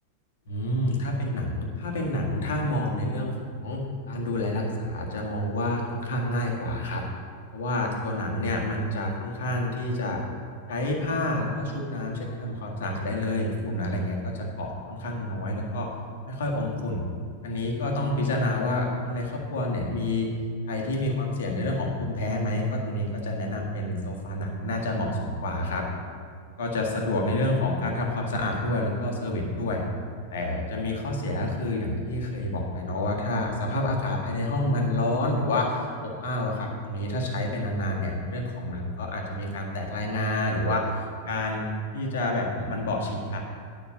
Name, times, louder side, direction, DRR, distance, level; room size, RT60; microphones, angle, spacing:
voice 1, 0.5-7.0 7.5-10.2 10.7-15.9 16.3-17.1 17.4-20.3 20.7-25.9 26.6-29.8 30.3-40.9 41.3-41.7 41.9-43.4, left 1 dB, 60° left, 0 dB, 1.8 m, -28 dB
10.0 x 5.8 x 6.6 m, 2.2 s
figure-of-eight pair, 90°, 0 cm